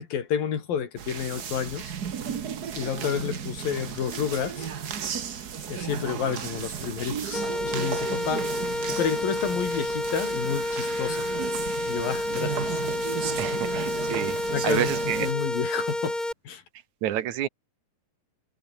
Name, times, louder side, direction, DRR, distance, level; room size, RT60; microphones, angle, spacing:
voice 1, 0.0-1.9 2.7-4.7 5.7-8.5 8.9-11.3 11.9-12.8 14.5-16.2 16.4-16.6, left 8 dB, 80° left, 4.7 m, -30 dB
sound 1, 1.0-15.3, right 8 dB, 80° right, 0.8 m, -34 dB
sound 2, 7.3-16.3, left 1 dB, 10° left, 4.5 m, -30 dB
voice 2, 13.4-14.4 14.6-15.3 17.0-17.5, right 12 dB, 65° right, 2.4 m, -29 dB
omnidirectional pair, 4.0 m